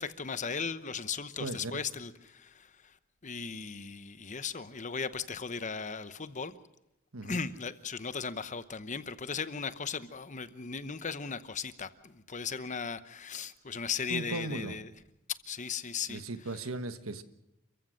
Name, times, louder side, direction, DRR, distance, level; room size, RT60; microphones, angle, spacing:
voice 1, 0.0-3.0 3.2-6.5 7.2-14.9 15.5-16.2, left 5 dB, 35° left, 13 dB, 0.9 m, -37 dB
voice 2, 1.4-1.7 7.1-7.4 14.1-14.8 16.1-17.2, right 2 dB, 80° right, 10 dB, 1.4 m, -37 dB
29.0 x 15.0 x 6.5 m, 0.91 s
head